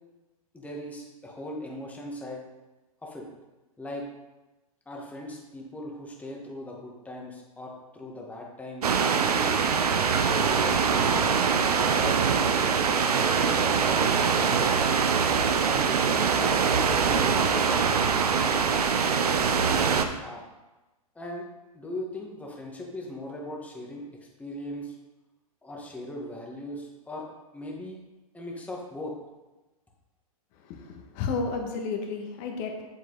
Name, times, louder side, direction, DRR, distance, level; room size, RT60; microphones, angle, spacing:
voice 1, 0.5-2.4 3.0-3.3 3.8-4.1 4.9-9.5 10.3-12.3 13.3-15.0 15.6-17.9 18.3-18.6 19.7-20.4 21.2-21.5 21.7-24.9 25.6-27.3 27.5-28.0 28.3-29.2, left 1 dB, 5° left, -1 dB, 1.8 m, -39 dB
sound 1, 8.8-20.0, right 6 dB, 85° right, 0.9 m, -23 dB
voice 2, 30.6-32.8, left 4 dB, 40° left, 2 dB, 1.9 m, -32 dB
8.0 x 7.6 x 4.1 m, 1.1 s
hypercardioid pair, 130°, 19 cm